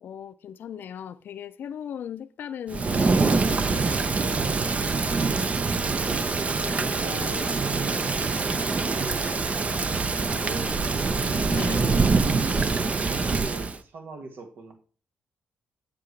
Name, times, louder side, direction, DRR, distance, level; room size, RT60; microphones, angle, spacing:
voice 1, 0.0-4.5 11.5-12.0, left 8 dB, 65° left, 0.4 m, -38 dB
Thunder / Rain, 2.7-13.8, right 4 dB, 40° right, 0.7 m, -25 dB
voice 2, 5.7-8.2 8.9-9.4 10.4-11.3 12.7-14.7, right 2 dB, 65° right, 1.5 m, -40 dB
sound 1, 6.6-12.9, left 3 dB, 30° left, 0.7 m, -44 dB
7.5 x 6.9 x 3.3 m
cardioid pair, 70°, 4 cm